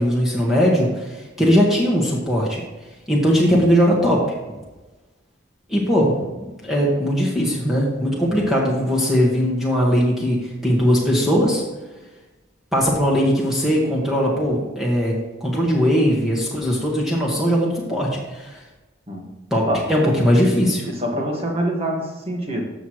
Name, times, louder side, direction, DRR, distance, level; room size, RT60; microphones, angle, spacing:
voice 1, 0.0-2.6 3.1-4.2 5.7-6.1 6.4-11.6 12.7-15.1 15.4-18.6 19.5-20.8, equal, ahead, -5 dB, 1.6 m, -19 dB
voice 2, 20.9-22.6, equal, 30° right, 0 dB, 1.6 m, -25 dB
13.5 x 6.5 x 3.1 m, 1.2 s
head